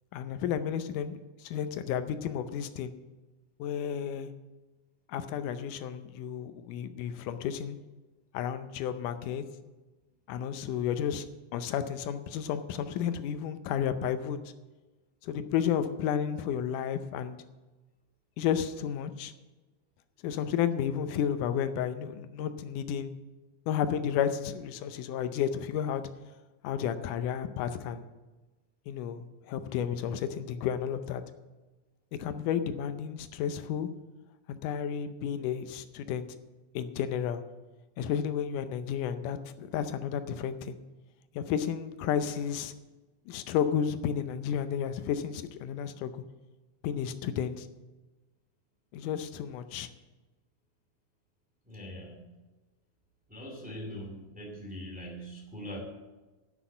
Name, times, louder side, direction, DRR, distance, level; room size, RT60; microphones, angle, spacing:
voice 1, 0.1-2.9 3.6-4.3 5.1-7.8 8.3-9.5 10.3-11.3 11.5-14.4 15.2-17.4 18.4-19.3 20.2-23.1 23.7-26.0 26.6-28.0 28.9-31.2 32.2-33.9 34.5-36.3 36.8-37.4 38.0-40.8 41.4-42.7 43.3-46.2 46.8-47.7 48.9-49.9, left 8 dB, 90° left, 10 dB, 2.3 m, -32 dB
voice 2, 51.6-52.2 53.3-55.8, equal, 5° right, 0 dB, 1.8 m, -42 dB
11.5 x 6.2 x 8.5 m, 1.2 s
omnidirectional pair, 3.6 m